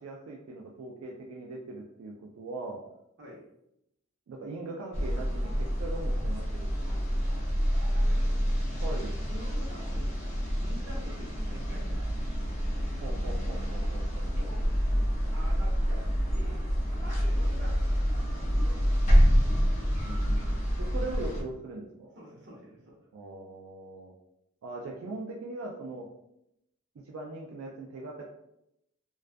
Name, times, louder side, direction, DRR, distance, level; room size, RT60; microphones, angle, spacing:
voice 1, 0.0-2.8 4.3-7.1 8.8-9.1 13.0-14.5 20.0-22.1 23.1-24.1 24.6-26.1 27.0-28.3, right 2 dB, 90° right, -1 dB, 0.3 m, -40 dB
sound 1, 4.9-21.4, equal, 35° left, 0.5 m, -27 dB
voice 2, 7.7-8.3 9.3-12.3 12.8-13.0 14.3-14.6 15.3-17.8 18.1-19.1 21.3-21.4 22.1-23.1, equal, 60° right, -4 dB, 0.8 m, -48 dB
2.3 x 2.2 x 2.4 m, 0.81 s
head